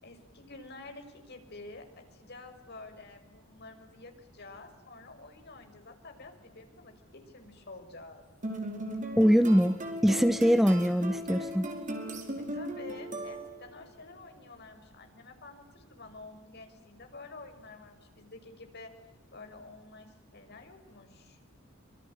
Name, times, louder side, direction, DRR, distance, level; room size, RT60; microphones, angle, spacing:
voice 1, 0.0-8.2 12.5-18.9 19.3-21.4, left 3 dB, 55° left, 5 dB, 5.7 m, -49 dB
sound 1, 8.4-13.8, right 1 dB, 40° right, 4.8 m, -37 dB
voice 2, 9.2-9.8 10.0-11.7, equal, ahead, 12 dB, 0.8 m, -23 dB
26.0 x 24.5 x 8.9 m, 1.1 s
head